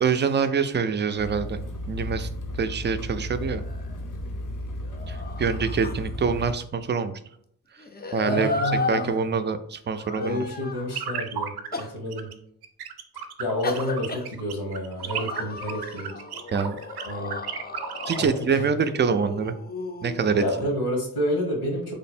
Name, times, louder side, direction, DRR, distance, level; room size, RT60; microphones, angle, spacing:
voice 1, 0.0-1.6 1.9-3.6 5.1-7.2 7.7-7.8 8.1-8.5 8.9-10.4 16.5-16.8 18.0-19.6 20.0-20.8, right 5 dB, 30° right, 9 dB, 0.4 m, -25 dB
sound 1, 1.2-6.5, left 1 dB, 55° left, 0.8 m, -34 dB
sound 2, 3.1-4.4 4.8-6.4 7.8-9.1 10.0-11.0 11.7-11.9 13.6-14.2 15.0-20.6, left 3 dB, 25° left, 0.5 m, -34 dB
voice 2, 8.2-9.3 10.2-12.3 13.4-16.1 17.0-17.4 18.2-18.7 20.4-21.9, left 1 dB, 90° left, -1 dB, 1.4 m, -29 dB
sound 3, 10.9-11.8 12.1-12.3 12.6-18.3, right 8 dB, 80° right, 0.5 m, -33 dB
3.3 x 2.0 x 4.2 m, 0.66 s
cardioid pair, 50°, 37 cm